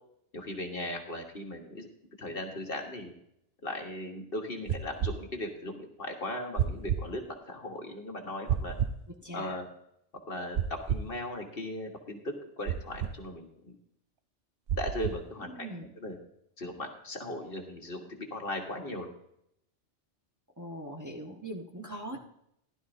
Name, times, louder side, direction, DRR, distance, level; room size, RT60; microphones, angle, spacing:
voice 1, 0.3-1.9 2.2-3.1 3.6-8.8 9.3-9.7 10.3-13.8 14.7-15.7 16.0-16.2 16.6-19.1 22.1-22.2, left 1 dB, 55° left, 2 dB, 1.7 m, -38 dB
sound 1, 4.7-5.2 6.6-7.0 8.5-9.0 10.5-11.1 12.7-13.1 14.7-15.2, right 9 dB, 60° right, 0.8 m, -30 dB
voice 2, 9.2-9.6 15.4-15.9 20.6-22.2, right 1 dB, 15° right, -1 dB, 1.3 m, -41 dB
15.5 x 11.5 x 2.7 m, 0.75 s
omnidirectional pair, 1.2 m